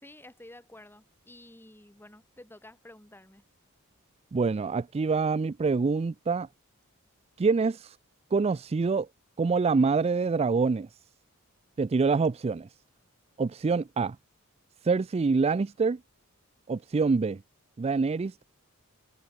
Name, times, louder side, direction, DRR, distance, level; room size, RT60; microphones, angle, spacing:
voice 1, 0.0-3.4, left 1 dB, 10° left, 2.2 m, -51 dB
voice 2, 4.3-6.5 7.4-8.0 8.3-9.1 9.4-10.9 11.8-12.7 13.4-14.2 14.8-16.0 16.7-17.4 17.8-18.4, right 4 dB, 30° right, 0.4 m, -26 dB
head